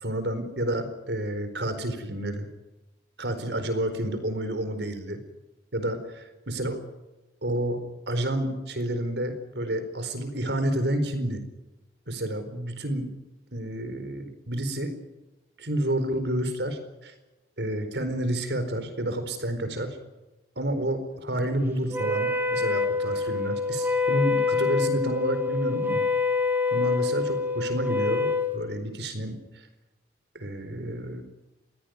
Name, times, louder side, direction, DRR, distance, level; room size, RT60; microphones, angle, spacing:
voice 1, 0.0-2.5 3.2-5.2 5.7-6.8 7.4-11.4 12.1-13.1 13.5-14.9 15.6-17.1 17.6-20.0 20.6-26.0 26.7-29.4 30.3-31.2, right 1 dB, 75° right, 9 dB, 4.5 m, -29 dB
Wind instrument woodwind instrument, 21.9-28.5, left 4 dB, 10° right, 2.4 m, -26 dB
23.0 x 17.5 x 9.6 m, 1.0 s
head